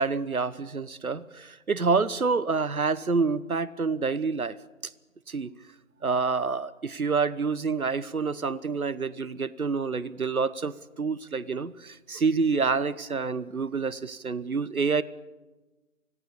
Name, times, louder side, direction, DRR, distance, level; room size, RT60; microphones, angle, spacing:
voice 1, 0.0-4.6 5.3-5.5 6.0-15.0, right 4 dB, 85° right, 18 dB, 1.1 m, -27 dB
25.5 x 18.0 x 7.0 m, 1.2 s
figure-of-eight pair, 165°, 42 cm